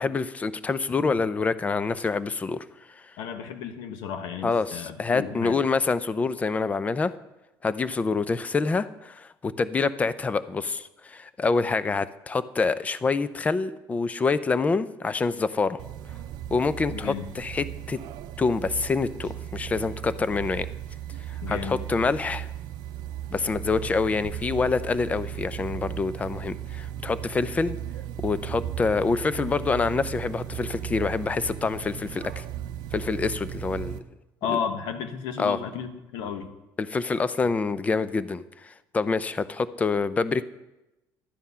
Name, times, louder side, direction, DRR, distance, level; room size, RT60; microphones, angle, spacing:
voice 1, 0.0-3.0 4.4-7.1 7.6-15.8 16.5-18.0 18.4-20.7 21.5-22.5 23.3-27.8 28.2-32.4 32.9-34.0 34.5-34.6 35.4-35.6 36.8-40.4, left 4 dB, 20° left, 15 dB, 0.5 m, -26 dB
voice 2, 3.2-5.6 16.9-17.3 21.4-21.8 34.4-36.5, left 7 dB, 85° left, 8 dB, 1.3 m, -33 dB
sound 1, 15.8-34.0, right 11 dB, 65° right, 0.6 m, -36 dB
12.0 x 9.6 x 5.6 m, 0.97 s
cardioid pair, 140°, 8 cm